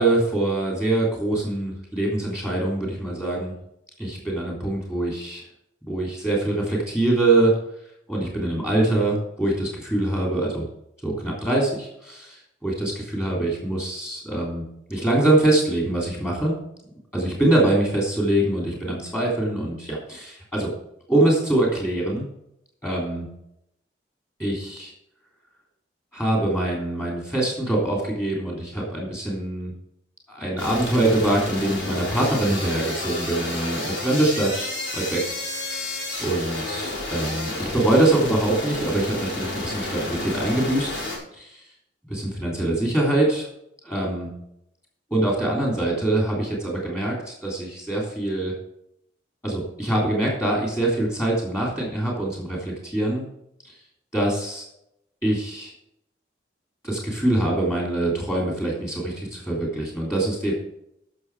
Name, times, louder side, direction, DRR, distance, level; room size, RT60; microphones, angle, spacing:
voice 1, 0.0-3.5 4.0-5.4 5.8-7.5 8.1-10.7 11.0-14.6 14.9-16.5 17.1-20.7 21.1-22.3 22.8-23.3 24.4-24.9 26.1-29.7 30.3-35.2 35.6-35.8 36.2-40.9 41.3-41.6 42.1-43.5 43.8-44.3 45.1-48.5 49.4-53.2 53.6-53.7 54.1-54.6 55.2-55.7 56.8-60.5, right 1 dB, 15° left, -2 dB, 3.1 m, -24 dB
sound 1, 30.6-41.2, left 2 dB, 75° left, 5.0 m, -31 dB
13.0 x 6.6 x 4.8 m, 0.79 s
head